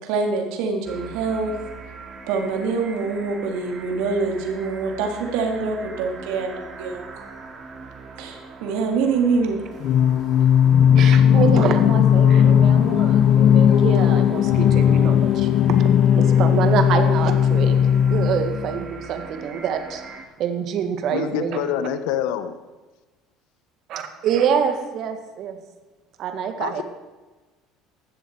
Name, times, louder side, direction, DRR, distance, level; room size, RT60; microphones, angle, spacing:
voice 1, 0.0-1.5 2.3-7.3 8.2-9.6, right 4 dB, 80° right, 3 dB, 2.6 m, -25 dB
sound 1, 0.8-20.2, right 4 dB, 35° right, 2.3 m, -41 dB
Singing, 9.8-18.7, left 9 dB, 55° left, 0.6 m, -16 dB
voice 2, 11.0-15.9 16.2-17.8 18.1-20.0 20.4-21.8 23.9-25.6 26.2-26.8, right 7 dB, 55° right, 7 dB, 1.8 m, -26 dB
voice 3, 21.1-22.5 26.6-26.8, left 10 dB, 80° left, 11 dB, 1.0 m, -26 dB
15.0 x 12.5 x 4.7 m, 1.2 s
supercardioid pair, 100°, 0 cm